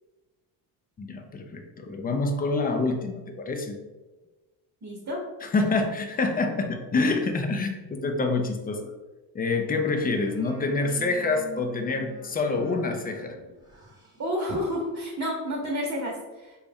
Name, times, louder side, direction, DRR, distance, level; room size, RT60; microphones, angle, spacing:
voice 1, 1.0-3.8 5.4-8.9 9.3-13.4, left 3 dB, 20° left, 4 dB, 0.3 m, -27 dB
voice 2, 4.8-5.2 14.2-16.6, equal, 35° right, -2 dB, 0.9 m, -30 dB
sound 1, 9.7-14.9, right 2 dB, 10° right, 1.0 m, -44 dB
4.0 x 2.3 x 3.4 m, 1.2 s
cardioid pair, 95°, 49 cm